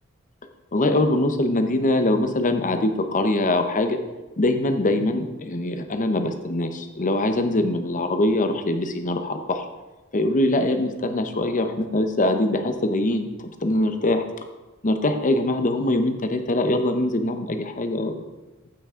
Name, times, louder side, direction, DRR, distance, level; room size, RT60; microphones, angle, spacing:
voice 1, 0.7-4.0 4.4-9.6 10.1-13.3 13.6-14.3 14.8-18.3, left 1 dB, 35° left, 7 dB, 0.8 m, -23 dB
14.5 x 5.9 x 3.7 m, 1.1 s
head